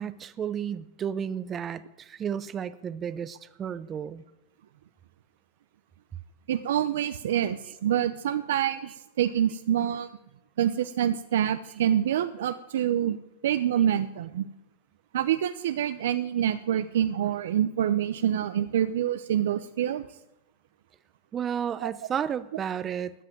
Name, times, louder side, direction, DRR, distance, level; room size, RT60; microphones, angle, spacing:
voice 1, 0.0-4.2 21.3-23.1, right 8 dB, 25° right, 15 dB, 0.6 m, -32 dB
voice 2, 6.5-10.1 10.6-13.2 13.4-14.5 15.1-20.1 21.8-21.9, right 10 dB, 80° right, 11 dB, 0.7 m, -26 dB
14.0 x 7.6 x 9.3 m, 0.88 s
supercardioid pair, 130°, 0 cm